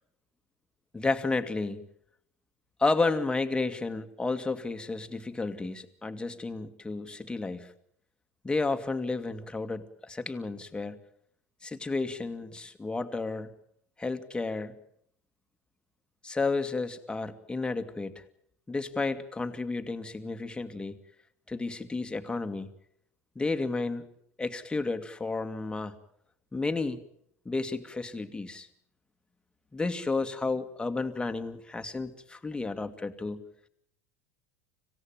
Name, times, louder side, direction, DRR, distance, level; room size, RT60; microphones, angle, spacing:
voice 1, 0.9-1.9 2.8-7.7 8.4-11.0 11.6-13.5 14.0-14.7 16.2-18.1 18.7-20.9 21.5-22.7 23.4-24.1 24.4-26.0 26.5-27.0 27.5-28.7 29.7-33.4, left 3 dB, 10° left, 7 dB, 2.2 m, -32 dB
26.5 x 16.5 x 9.2 m, 0.72 s
hypercardioid pair, 80°, 7 cm